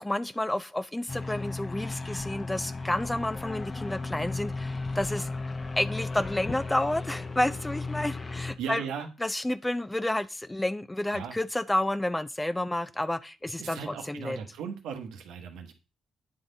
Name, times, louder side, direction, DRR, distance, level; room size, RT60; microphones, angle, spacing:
voice 1, 0.0-5.3 5.8-8.8 9.2-14.4, left 1 dB, 10° left, 0.4 m, -30 dB
sound 1, 1.1-8.5, left 3 dB, 30° left, 0.8 m, -35 dB
voice 2, 8.6-9.1 11.1-11.4 13.6-15.7, right 7 dB, 90° right, 1.0 m, -37 dB
8.7 x 3.8 x 3.9 m
cardioid pair, 90°, 0 cm